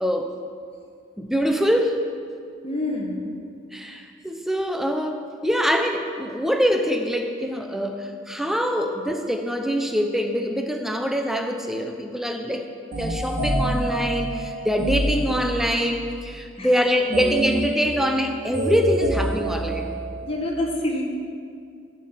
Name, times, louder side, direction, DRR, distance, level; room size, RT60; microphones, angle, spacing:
voice 1, 0.0-0.3 1.2-2.0 3.7-12.7 13.0-19.9, equal, ahead, 4 dB, 0.7 m, -24 dB
voice 2, 2.6-3.3 16.6-16.7 20.2-21.0, left 1 dB, 30° left, 0 dB, 1.4 m, -27 dB
sound 1, 12.9-15.9 17.1-20.4, right 1 dB, 75° right, 3.3 m, -27 dB
15.0 x 6.7 x 5.7 m, 2.3 s
head